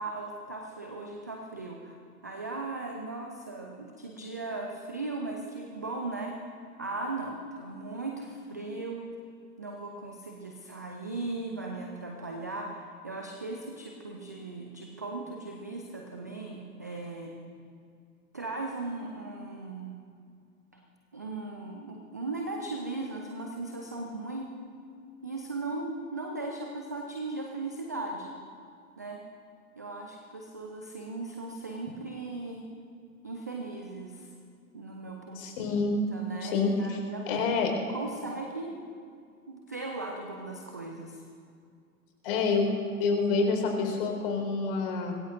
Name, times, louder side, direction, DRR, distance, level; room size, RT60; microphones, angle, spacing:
voice 1, 0.0-2.0 2.2-6.4 6.8-9.0 9.6-17.3 18.3-19.9 21.1-24.5 25.2-28.4 29.0-29.2 29.8-32.6 33.2-34.3 34.7-35.7 36.1-37.4 37.9-38.8 39.5-41.2, right 3 dB, 15° right, 1 dB, 0.3 m, -38 dB
voice 2, 35.3-36.0 36.4-37.0 37.3-37.7 42.2-42.7 43.0-45.1, left 4 dB, 40° left, 2 dB, 4.8 m, -27 dB
25.5 x 20.5 x 2.7 m, 2.3 s
figure-of-eight pair, 110°, 45 cm